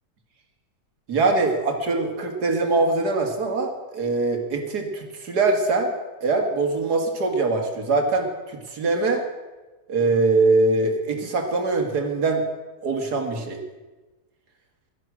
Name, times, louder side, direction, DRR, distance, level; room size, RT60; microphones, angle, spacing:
voice 1, 1.1-5.9 6.2-9.2 9.9-12.4 12.8-13.6, right 3 dB, 80° right, 4 dB, 2.5 m, -23 dB
17.0 x 13.0 x 6.2 m, 1.2 s
omnidirectional pair, 1.7 m